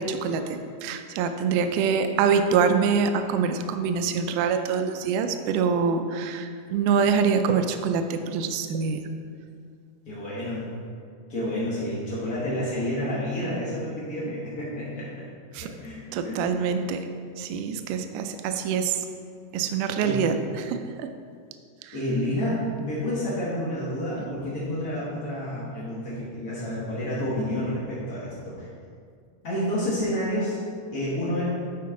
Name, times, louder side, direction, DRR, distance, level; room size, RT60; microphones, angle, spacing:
voice 1, 0.0-9.0 15.5-15.7 16.1-17.1 17.4-19.0 19.5-21.1 21.8-21.9 24.3-24.4, right 6 dB, 80° right, 8 dB, 2.0 m, -25 dB
voice 2, 10.1-10.7 11.3-15.3 15.6-16.4 20.0-20.2 21.9-28.7 29.4-30.6 30.9-31.4, left 1 dB, 60° left, -9 dB, 0.9 m, -29 dB
10.5 x 4.6 x 3.6 m, 2.2 s
omnidirectional pair, 3.7 m